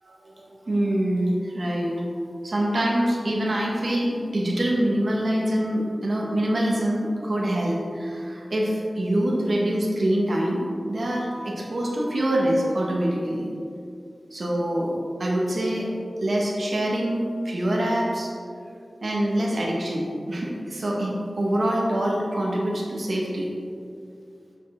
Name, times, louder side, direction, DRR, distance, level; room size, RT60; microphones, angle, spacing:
voice 1, 0.0-1.9 2.4-10.6 10.9-13.5 14.3-14.9 15.2-15.9 16.2-18.3 19.0-23.5, right 1 dB, 65° right, -3 dB, 1.5 m, -25 dB
7.4 x 6.3 x 3.7 m, 2.4 s
wide cardioid pair, 75°, 0 cm